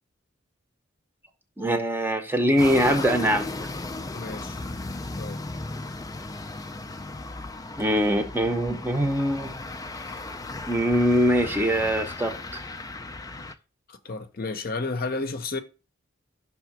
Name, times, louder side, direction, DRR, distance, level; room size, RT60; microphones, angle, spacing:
voice 1, 1.6-3.5 7.8-9.5 10.7-12.6, equal, 10° right, 0.7 m, -23 dB
sound 1, 2.6-13.5, left 2 dB, 20° left, 0.4 m, -36 dB
voice 2, 4.1-4.6 5.2-5.4 13.3-13.4 13.9-15.6, left 3 dB, 50° left, 0.7 m, -32 dB
5.9 x 3.6 x 5.9 m
head